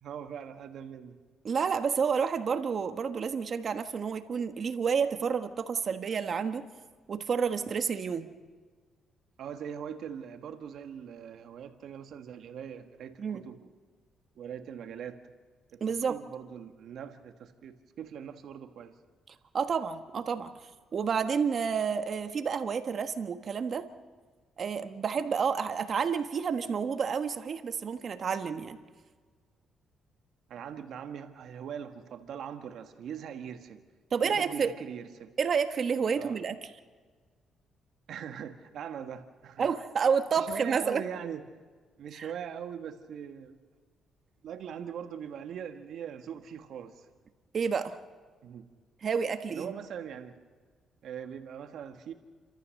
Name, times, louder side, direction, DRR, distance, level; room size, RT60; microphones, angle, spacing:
voice 1, 0.0-1.2 9.4-13.7 14.3-15.2 15.7-18.9 30.5-33.8 34.2-35.3 36.2-36.4 38.1-39.7 40.3-41.4 42.0-43.6 44.4-47.1 48.4-48.7 49.5-50.4 51.0-52.1, right 8 dB, 70° right, 7 dB, 1.6 m, -41 dB
voice 2, 1.4-6.7 7.1-8.3 13.2-13.4 15.8-16.2 19.3-20.5 20.9-23.9 24.6-28.8 34.1-34.7 35.4-36.5 39.6-41.0 42.1-42.3 47.5-48.0 49.0-49.7, right 6 dB, 50° right, 9 dB, 1.4 m, -30 dB
30.0 x 14.0 x 6.5 m, 1.5 s
cardioid pair, 90°, 0 cm